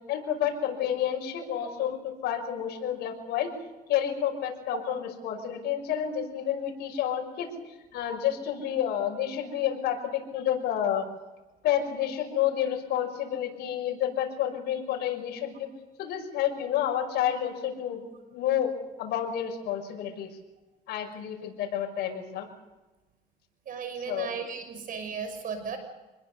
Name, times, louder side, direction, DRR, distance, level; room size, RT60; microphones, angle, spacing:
voice 1, 0.1-3.6 3.9-11.1 11.6-15.7 16.0-18.0 18.3-20.3 20.9-22.5 24.0-24.3, left 10 dB, 75° left, 2 dB, 5.9 m, -30 dB
voice 2, 23.7-25.8, right 6 dB, 55° right, 8 dB, 6.2 m, -35 dB
26.5 x 21.0 x 7.0 m, 1.1 s
cardioid pair, 110°, 17 cm